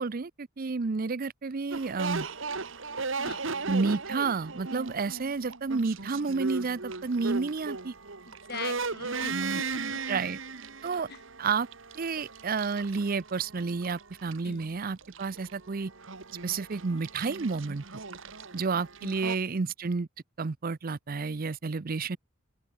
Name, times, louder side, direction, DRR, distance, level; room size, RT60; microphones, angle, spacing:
voice 1, 0.0-2.3 3.7-7.9 9.3-9.6 10.1-10.4 10.8-11.1 11.4-11.7 12.0-15.9 16.4-17.8 18.5-20.1 20.4-22.2, right 4 dB, 45° right, 0.6 m, -30 dB
sound 1, 1.7-19.4, right 4 dB, 65° right, 2.0 m, -37 dB
voice 2, 8.3-10.0 11.1-11.2 14.4-14.7 19.0-19.1, left 5 dB, 50° left, 2.5 m, -42 dB
open air
head